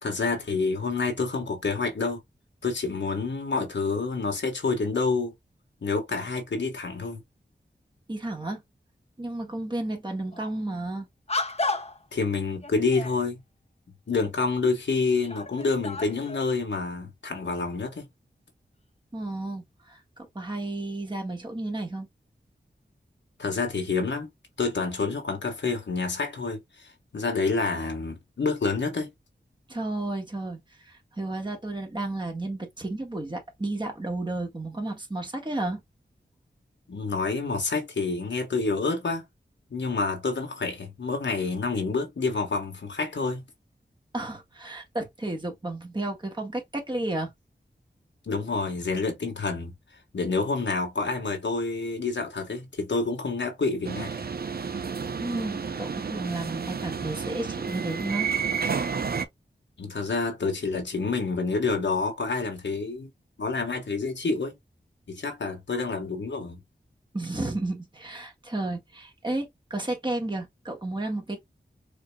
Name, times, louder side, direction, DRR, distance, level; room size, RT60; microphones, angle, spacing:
voice 1, 0.0-2.2 2.6-5.3 5.8-7.2 12.1-13.4 14.1-18.1 23.4-24.3 24.6-29.1 36.9-39.2 39.7-43.4 48.3-49.7 50.1-54.2 59.8-63.1 63.4-64.6 65.1-66.6, left 4 dB, 75° left, 1.4 m, -28 dB
voice 2, 8.1-8.6 9.2-11.1 19.1-20.0 20.3-22.1 29.7-35.8 44.1-47.3 55.2-58.3 67.1-71.4, right 2 dB, 25° right, 1.5 m, -32 dB
sound 1, 10.3-10.5 11.3-12.1 12.6-13.2 14.2-14.3 14.9-16.5, left 2 dB, 35° left, 0.9 m, -33 dB
sound 2, 53.8-59.3, right 6 dB, 55° right, 0.6 m, -31 dB
5.1 x 3.0 x 2.3 m
wide cardioid pair, 70°, 19 cm